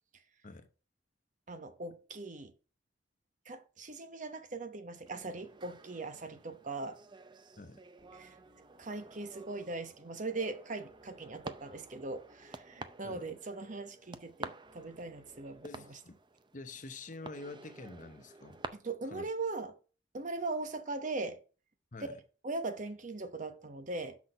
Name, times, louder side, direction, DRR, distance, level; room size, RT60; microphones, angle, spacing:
voice 1, 1.5-2.5 3.5-7.0 8.1-8.4 8.8-15.7 18.7-19.8 20.1-21.4 22.0-22.2 22.4-24.2, right 3 dB, 40° right, 0.9 m, -40 dB
sound 1, 5.1-18.7, right 3 dB, 25° right, 0.5 m, -50 dB
sound 2, 8.0-15.6, left 2 dB, ahead, 2.4 m, -67 dB
voice 2, 15.6-16.2 16.5-18.6 19.0-19.2 21.9-22.2, left 3 dB, 45° left, 0.9 m, -47 dB
6.0 x 6.0 x 6.6 m
head